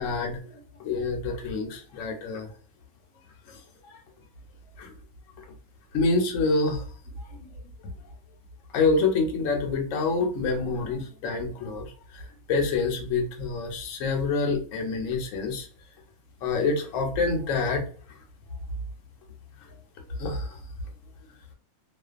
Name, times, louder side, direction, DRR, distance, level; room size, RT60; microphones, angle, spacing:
voice 1, 0.0-2.5 3.5-3.6 3.9-4.0 4.8-4.9 5.4-5.5 5.9-6.8 7.4-7.5 8.7-11.9 12.1-15.7 16.4-17.8 20.2-20.6, left 3 dB, 70° left, 3 dB, 0.9 m, -27 dB
2.4 x 2.2 x 2.3 m, 0.40 s
omnidirectional pair, 1.6 m